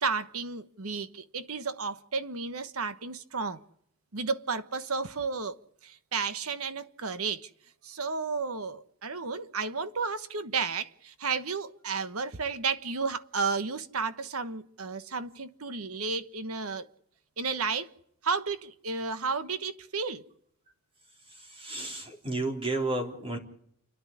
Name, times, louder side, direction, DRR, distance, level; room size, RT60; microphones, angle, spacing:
voice 1, 0.0-3.6 4.1-5.5 5.8-7.5 7.8-16.9 17.4-17.9 18.2-20.2, right 4 dB, 85° right, 1.2 m, -32 dB
voice 2, 21.2-23.4, right 2 dB, 25° right, 3.6 m, -32 dB
29.5 x 11.0 x 9.7 m
head